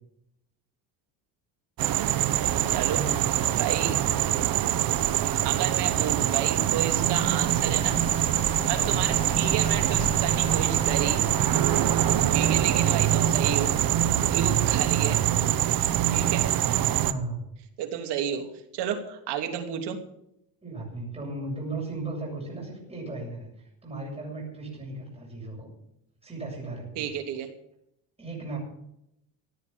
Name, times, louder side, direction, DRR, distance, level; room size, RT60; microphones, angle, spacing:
sound 1, 1.8-17.1, right 12 dB, 55° right, 1.1 m, -24 dB
sound 2, 2.2-14.8, left 1 dB, 15° left, 2.1 m, -39 dB
voice 1, 2.5-3.6 8.7-9.1 12.0-12.4 16.9-17.4 20.6-23.5 23.8-25.7 26.2-27.1 28.2-28.6, right 2 dB, 15° right, -3 dB, 7.7 m, -37 dB
voice 2, 3.6-4.0 5.4-8.0 8.7-11.2 12.3-13.7 14.3-15.2 15.9-16.5 17.8-18.5 18.7-20.0 26.9-27.5, right 9 dB, 70° right, 5 dB, 3.1 m, -31 dB
16.0 x 9.6 x 7.2 m, 0.78 s
cardioid pair, 120°, 42 cm